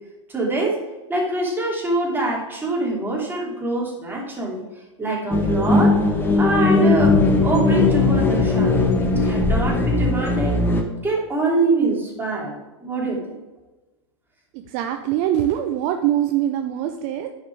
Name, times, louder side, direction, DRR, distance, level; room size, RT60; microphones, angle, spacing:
voice 1, 0.3-0.8 1.1-4.6 5.0-6.0 6.4-7.2 7.4-8.7 9.0-10.6 11.0-12.5 12.8-13.3, right 2 dB, 15° right, -2 dB, 3.0 m, -24 dB
sound 1, 5.3-10.8, left 3 dB, 15° left, 1.3 m, -18 dB
voice 2, 14.5-17.3, right 11 dB, 50° right, 7 dB, 0.7 m, -23 dB
11.0 x 5.1 x 4.7 m, 1.1 s
hypercardioid pair, 110°, 15 cm